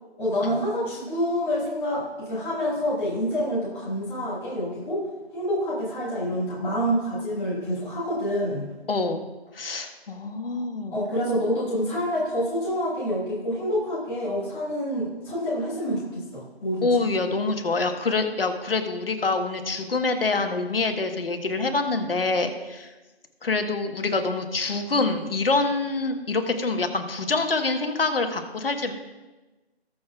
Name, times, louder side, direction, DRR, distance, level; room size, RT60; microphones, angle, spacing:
voice 1, 0.2-5.1 5.3-8.7 10.9-16.9, equal, 5° left, -9 dB, 1.8 m, -27 dB
voice 2, 8.9-9.2 9.5-10.9 16.8-22.9 23.4-28.9, left 3 dB, 60° left, 6 dB, 1.3 m, -26 dB
20.0 x 6.8 x 2.4 m, 1.1 s
figure-of-eight pair, 165°, 32 cm